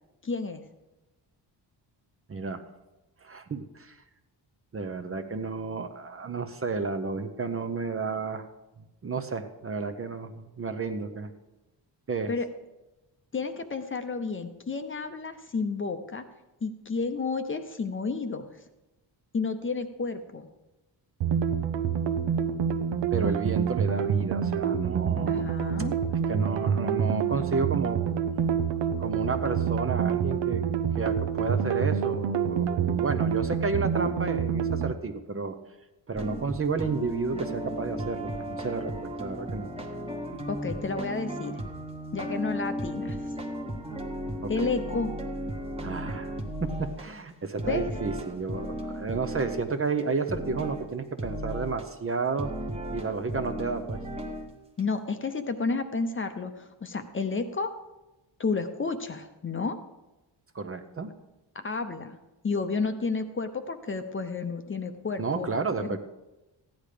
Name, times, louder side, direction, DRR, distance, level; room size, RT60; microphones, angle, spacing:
voice 1, 0.2-0.6 12.3-12.5 13.3-16.2 16.6-18.6 19.3-20.5 25.3-25.9 40.5-41.6 42.1-43.3 44.5-45.1 47.7-47.9 54.8-57.7 58.4-59.8 61.5-62.2 62.4-65.5 65.8-66.0, left 4 dB, 25° left, 8 dB, 0.7 m, -31 dB
voice 2, 2.3-2.6 3.2-4.0 4.7-8.5 9.0-11.3 12.1-12.3 23.1-25.5 26.3-28.1 29.0-30.6 31.0-35.6 36.1-39.7 44.4-44.5 45.8-46.3 46.6-52.5 52.9-54.0 60.5-61.1 65.2-66.0, right 4 dB, 30° right, 8 dB, 0.7 m, -31 dB
sound 1, 21.2-34.9, right 8 dB, 75° right, 0.8 m, -27 dB
sound 2, 36.1-47.0 47.6-49.7 50.0-50.1 50.3-50.9 51.2-51.8 52.4-54.5 54.8-54.9, right 1 dB, 15° right, 1.2 m, -35 dB
15.0 x 10.5 x 5.0 m, 1.0 s
wide cardioid pair, 170°, 44 cm